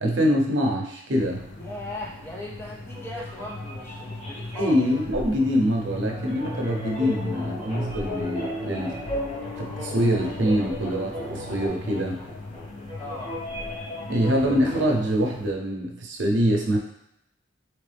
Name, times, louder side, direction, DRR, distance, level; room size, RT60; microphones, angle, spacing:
voice 1, 0.0-1.5 4.5-9.0 9.6-12.2 14.1-16.8, equal, 65° right, 0 dB, 0.7 m, -24 dB
sound 1, 1.1-15.5, left 1 dB, 70° left, 0.6 m, -38 dB
voice 2, 1.6-4.8 13.0-13.3, left 1 dB, 10° left, -3 dB, 0.6 m, -38 dB
sound 2, 2.9-15.0, left 1 dB, 30° left, 1.2 m, -37 dB
sound 3, 6.0-11.7, right 1 dB, 30° right, 0.6 m, -38 dB
3.9 x 3.2 x 3.3 m, 0.81 s
head